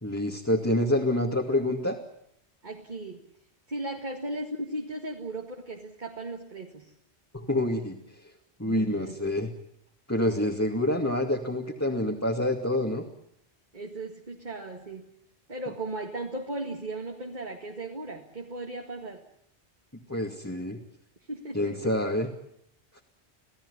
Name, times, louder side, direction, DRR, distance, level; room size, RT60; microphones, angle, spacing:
voice 1, 0.0-2.0 7.3-8.0 8.6-9.5 10.1-13.0 20.1-20.8 21.5-22.3, left 1 dB, 15° left, 0 dB, 2.4 m, -27 dB
voice 2, 2.6-3.3 3.7-6.9 8.6-9.3 10.4-10.5 13.7-15.1 15.5-19.2 21.3-21.9, right 2 dB, 40° right, 2 dB, 2.2 m, -37 dB
28.0 x 17.0 x 9.9 m, 0.75 s
omnidirectional pair, 1.2 m